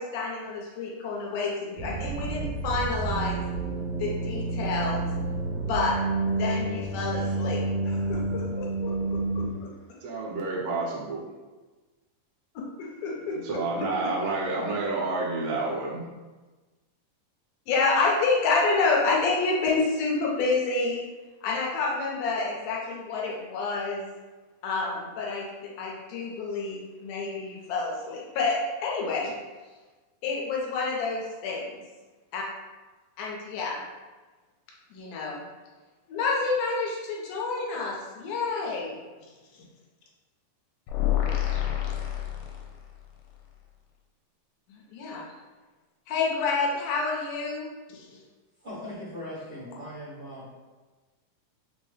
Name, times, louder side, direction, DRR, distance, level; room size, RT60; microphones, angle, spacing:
voice 1, 0.0-3.4 4.0-5.1 5.5-9.5 12.8-13.4 14.0-14.1 17.7-21.0 21.4-24.1 24.6-25.5 25.8-29.3 30.2-31.8 32.3-32.4 33.2-33.8 34.9-35.4 36.1-39.0 39.5-39.6 44.7-45.2 46.1-48.2, left 4 dB, 75° left, -3 dB, 2.1 m, -29 dB
sound 1, 1.8-9.5, right 3 dB, 90° right, 2.8 m, -29 dB
voice 2, 10.0-11.2 13.4-16.0, right 3 dB, 75° right, -5 dB, 2.1 m, -29 dB
sound 2, 40.9-43.0, left 12 dB, 90° left, 2.3 m, -28 dB
voice 3, 48.6-50.4, left 1 dB, 55° right, -11 dB, 1.1 m, -39 dB
6.2 x 2.1 x 3.2 m, 1.3 s
omnidirectional pair, 4.0 m